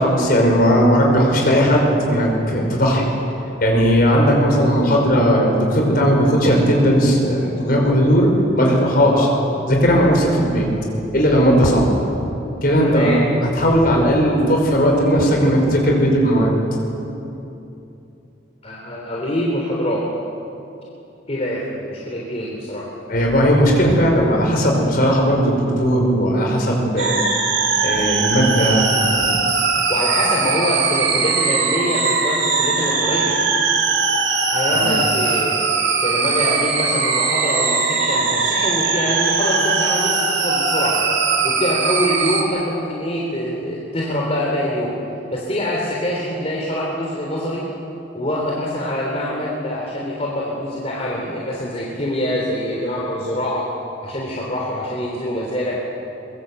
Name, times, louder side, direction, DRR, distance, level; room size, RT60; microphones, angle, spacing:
voice 1, 0.0-3.1 3.6-8.3 8.6-9.3 9.7-10.7 11.1-12.0 12.6-13.1 13.5-16.8 23.1-27.2 27.8-29.3 34.7-34.9, equal, 50° left, 0 dB, 5.5 m, -17 dB
voice 2, 12.8-13.2 18.6-20.1 21.3-22.9 23.7-23.8 29.9-33.4 34.5-35.7 36.0-41.0 41.4-45.0 45.3-47.7 48.1-53.7 54.0-55.8, equal, 35° left, -3 dB, 3.3 m, -24 dB
sound 1, 27.0-42.4, right 4 dB, 80° right, 3.7 m, -20 dB
23.0 x 22.0 x 8.2 m, 2.8 s
head